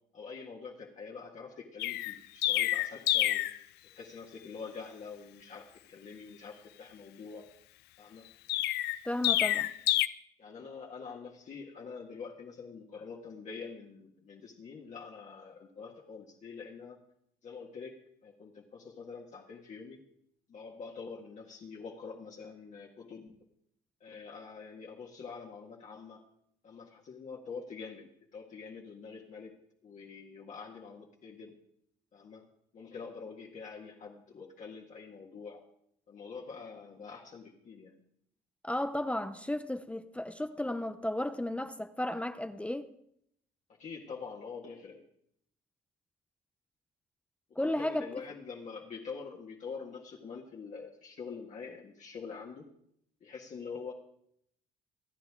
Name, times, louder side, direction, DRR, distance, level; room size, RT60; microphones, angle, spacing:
voice 1, 0.1-3.5 3.9-7.5 8.0-8.3 10.4-17.0 17.4-20.0 20.5-23.3 24.0-26.2 26.6-29.5 29.8-31.6 32.1-32.5 32.7-35.6 36.1-38.0 43.8-45.0 47.5-52.7 53.2-53.9, left 5 dB, 45° left, 1.9 m, -45 dB
Chirp tweet, 1.8-3.6 8.5-10.1, left 15 dB, 80° left, 0.5 m, -28 dB
voice 2, 9.0-9.7 38.6-42.9 47.6-48.1, left 1 dB, 5° left, 0.6 m, -34 dB
27.0 x 9.5 x 3.7 m
cardioid pair, 110°, 17 cm